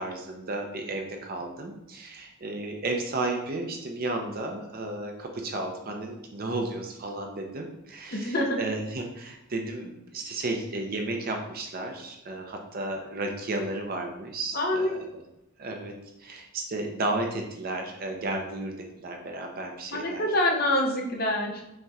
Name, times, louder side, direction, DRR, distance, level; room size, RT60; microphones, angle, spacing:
voice 1, 0.0-15.2 15.6-20.3, right 2 dB, 45° right, 3 dB, 0.6 m, -33 dB
voice 2, 8.1-8.6 14.5-15.0 19.9-21.6, left 1 dB, 45° left, 1 dB, 0.7 m, -26 dB
5.4 x 3.0 x 2.4 m, 0.90 s
head